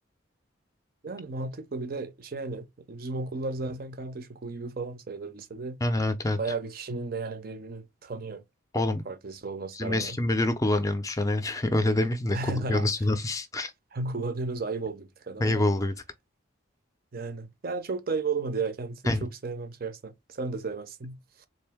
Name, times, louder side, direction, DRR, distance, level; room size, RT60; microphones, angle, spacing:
voice 1, 1.0-5.8 6.4-8.4 9.1-10.2 12.3-12.9 13.9-15.6 17.1-21.5, right 3 dB, 45° right, 0.5 m, -34 dB
voice 2, 5.8-6.4 8.7-9.0 9.7-13.7 15.4-15.9 19.1-19.3, left 1 dB, 15° left, 0.4 m, -26 dB
3.8 x 2.6 x 3.4 m
head